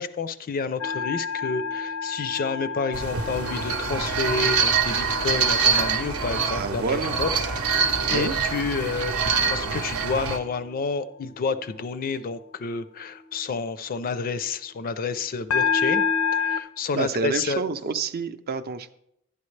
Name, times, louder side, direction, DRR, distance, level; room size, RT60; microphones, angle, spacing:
voice 1, 0.0-7.3 7.7-16.0 16.3-17.6, left 4 dB, 40° left, 13 dB, 0.4 m, -29 dB
sound 1, 0.8-9.1 9.5-9.9 15.5-16.6, left 6 dB, 90° left, 0.6 m, -30 dB
sound 2, 2.9-10.4, right 5 dB, 80° right, 0.8 m, -25 dB
voice 2, 6.4-7.1 8.1-8.3 16.9-18.9, right 4 dB, 45° right, 10 dB, 0.5 m, -28 dB
11.5 x 9.5 x 3.2 m, 0.77 s
head